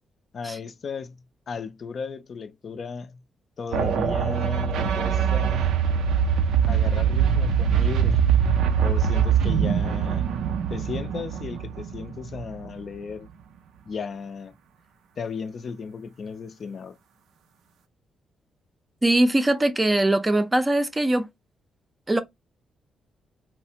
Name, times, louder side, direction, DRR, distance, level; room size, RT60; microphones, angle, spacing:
voice 1, 0.3-1.2 1.5-3.2 3.6-5.8 6.7-8.3 8.8-10.3 10.7-13.3 13.9-14.5 15.2-17.0, left 5 dB, 45° left, 0.4 m, -35 dB
sound 1, 3.7-12.8, right 7 dB, 90° right, 0.4 m, -23 dB
voice 2, 19.0-21.3 22.1-22.2, right 1 dB, 15° right, 0.4 m, -21 dB
3.1 x 2.1 x 2.7 m
cardioid pair, 125°, 0 cm